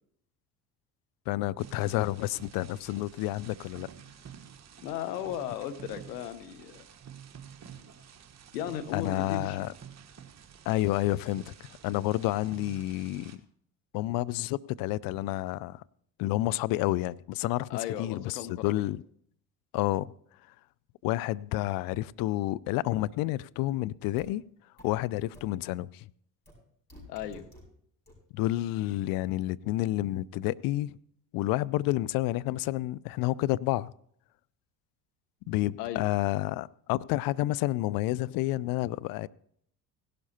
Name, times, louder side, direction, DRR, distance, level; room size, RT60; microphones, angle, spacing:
voice 1, 1.3-3.9 8.9-9.7 10.7-11.5 11.8-13.3 13.9-15.8 16.2-17.7 18.0-19.0 19.7-20.1 21.0-24.4 24.8-26.1 28.3-31.0 31.3-33.9 35.5-39.3, left 16 dB, 50° left, 0.5 m, -29 dB
sound 1, 1.6-13.4, right 8 dB, 35° right, 1.3 m, -50 dB
voice 2, 4.8-6.9 8.5-9.6 17.7-18.9 27.1-27.4 35.8-36.0, left 10 dB, 75° left, 1.0 m, -36 dB
sound 2, 24.2-24.3 24.8-24.9 25.3-25.4 26.5-26.6 26.9-27.6 28.1-28.2, equal, 20° left, 6.5 m, -50 dB
17.0 x 11.5 x 2.8 m
hypercardioid pair, 65°, 48 cm